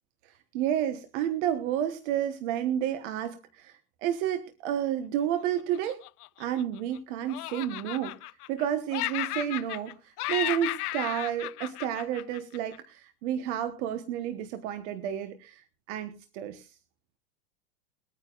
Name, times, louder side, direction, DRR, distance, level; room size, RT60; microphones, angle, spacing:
voice 1, 0.2-6.0 6.4-8.2 8.5-16.7, right 10 dB, 45° right, 9 dB, 1.2 m, -31 dB
Laughter, 5.7-7.0 7.3-8.6 8.9-9.9 10.2-12.8, left 17 dB, 65° left, 0.6 m, -34 dB
23.0 x 9.2 x 2.4 m, 0.32 s
hypercardioid pair, 140°, 49 cm